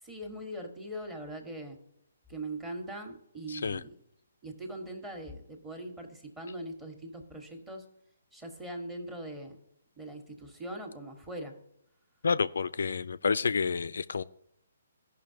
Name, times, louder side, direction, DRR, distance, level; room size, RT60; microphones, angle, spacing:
voice 1, 0.0-1.8 2.3-3.9 4.4-7.8 8.3-9.6 10.0-11.5, right 1 dB, 10° right, 3 dB, 1.5 m, -41 dB
voice 2, 3.5-3.8 12.2-14.2, left 5 dB, 65° left, 15 dB, 0.3 m, -29 dB
16.5 x 5.7 x 2.8 m, 0.74 s
figure-of-eight pair, 130°, 0 cm